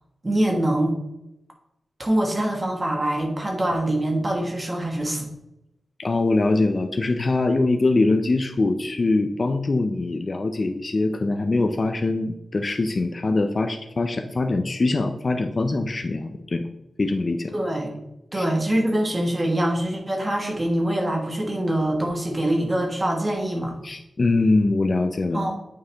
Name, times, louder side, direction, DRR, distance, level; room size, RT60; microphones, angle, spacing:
voice 1, 0.2-1.0 2.0-5.3 17.5-18.0 18.3-23.8 25.3-25.6, right 1 dB, 20° right, 1 dB, 1.4 m, -24 dB
voice 2, 6.0-16.7 17.0-17.5 18.3-18.5 23.8-25.5, left 2 dB, 35° left, 6 dB, 0.4 m, -23 dB
8.8 x 4.7 x 3.4 m, 0.86 s
wide cardioid pair, 175°, 0 cm